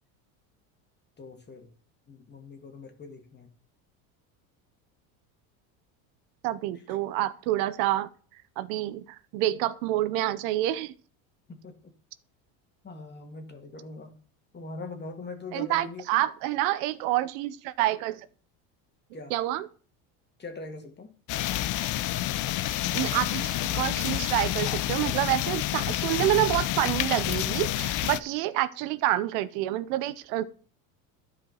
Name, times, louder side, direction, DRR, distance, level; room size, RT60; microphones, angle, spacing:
voice 1, 1.2-1.7 2.1-3.5 11.5-11.9 12.8-14.2 14.5-16.2 19.1-19.3 20.4-21.1, left 3 dB, 25° left, 2.0 m, -42 dB
voice 2, 6.4-8.1 8.6-10.9 15.5-18.3 19.3-19.7 22.9-30.4, right 15 dB, 75° right, 0.8 m, -28 dB
sound 1, 21.3-28.2, left 14 dB, 45° left, 0.6 m, -29 dB
12.0 x 5.0 x 4.4 m
supercardioid pair, 105°, 42 cm